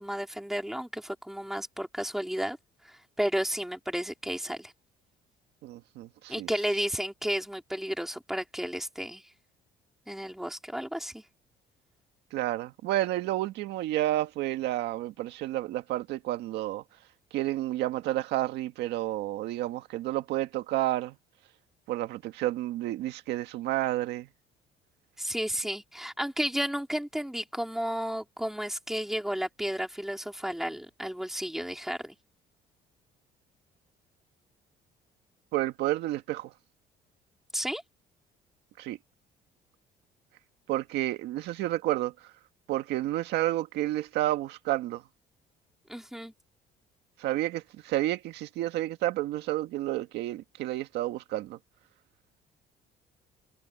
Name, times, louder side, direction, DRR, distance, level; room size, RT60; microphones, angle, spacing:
voice 1, 0.0-2.6 3.2-4.7 6.3-9.2 10.1-11.2 25.2-32.2 37.5-37.8 45.9-46.3, equal, ahead, 4.1 m, -32 dB
voice 2, 5.6-6.5 12.3-16.8 17.3-21.2 21.9-24.3 35.5-36.5 38.8-39.0 40.7-42.3 42.7-45.0 47.2-51.6, right 15 dB, 85° right, 1.8 m, -30 dB
cardioid pair, 110°, 17 cm